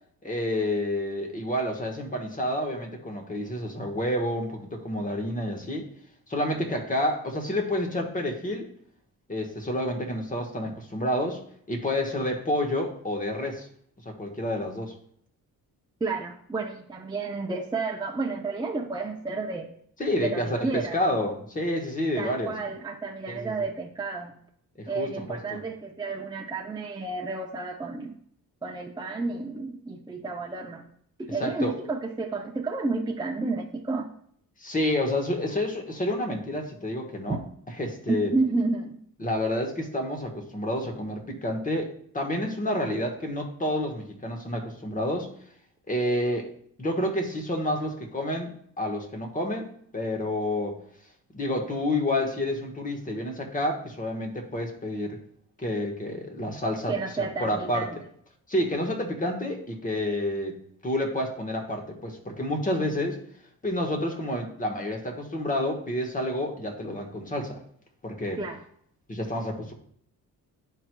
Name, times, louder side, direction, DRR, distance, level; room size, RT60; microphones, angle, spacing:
voice 1, 0.2-5.9 6.3-8.7 9.3-11.4 11.7-13.7 14.0-14.9 20.0-22.6 23.3-23.5 24.8-25.6 31.4-31.7 34.6-37.4 37.8-38.3 39.2-45.3 45.9-46.5 46.8-49.7 49.9-50.8 51.3-55.2 55.6-57.9 58.5-60.6 60.8-63.2 63.6-67.6 68.0-68.4 69.1-69.7, left 1 dB, 20° left, 3 dB, 1.2 m, -29 dB
voice 2, 16.0-19.7 20.2-21.0 22.2-24.3 24.9-28.2 28.6-30.9 31.2-34.1 37.3-37.4 38.1-39.0 56.9-58.0 68.4-68.6, right 3 dB, 10° right, 1 dB, 0.5 m, -31 dB
11.0 x 4.6 x 2.2 m, 0.64 s
cardioid pair, 125°, 36 cm